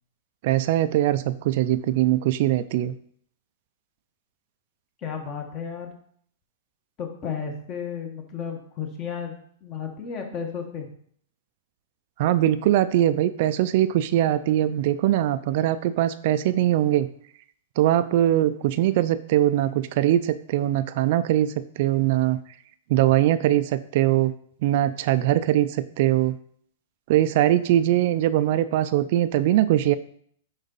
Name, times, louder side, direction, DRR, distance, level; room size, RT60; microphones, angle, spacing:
voice 1, 0.4-2.9 12.2-17.1 17.8-22.4 22.9-24.3 24.6-26.4 27.1-30.0, right 13 dB, 50° right, 12 dB, 0.4 m, -21 dB
voice 2, 5.0-5.9 7.0-10.9, left 7 dB, 30° left, 4 dB, 1.4 m, -33 dB
10.0 x 4.0 x 4.0 m, 0.63 s
hypercardioid pair, 145°, 0 cm